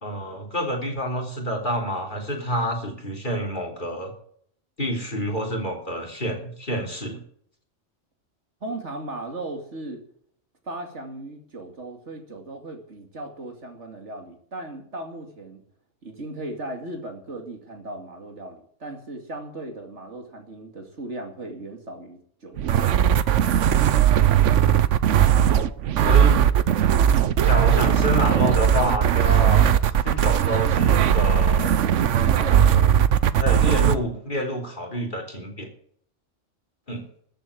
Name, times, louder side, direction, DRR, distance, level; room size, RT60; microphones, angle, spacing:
voice 1, 0.0-4.1 4.8-7.2 25.6-25.7 26.0-26.4 27.4-29.7 30.0-31.9 32.4-33.0 33.4-35.7 36.9-37.0, equal, 45° left, 1 dB, 3.6 m, -28 dB
voice 2, 8.6-10.0 10.6-15.6 16.0-22.9, right 2 dB, 75° right, 4 dB, 2.8 m, -37 dB
sound 1, 22.6-34.0, right 9 dB, 90° right, 1.1 m, -18 dB
13.5 x 7.9 x 8.4 m, 0.63 s
omnidirectional pair, 1.2 m